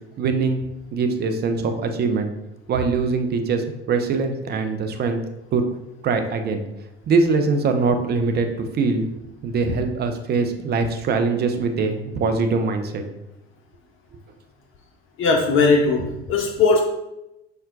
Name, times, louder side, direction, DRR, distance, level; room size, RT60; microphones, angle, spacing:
voice 1, 0.2-0.6 0.9-2.3 2.7-5.2 5.5-5.6 6.0-6.6 7.1-9.1 9.4-13.0, right 4 dB, 30° right, 7 dB, 0.5 m, -22 dB
voice 2, 15.2-16.8, left 4 dB, 40° left, 1 dB, 0.5 m, -18 dB
5.5 x 2.1 x 2.4 m, 0.92 s
figure-of-eight pair, 65°, 32 cm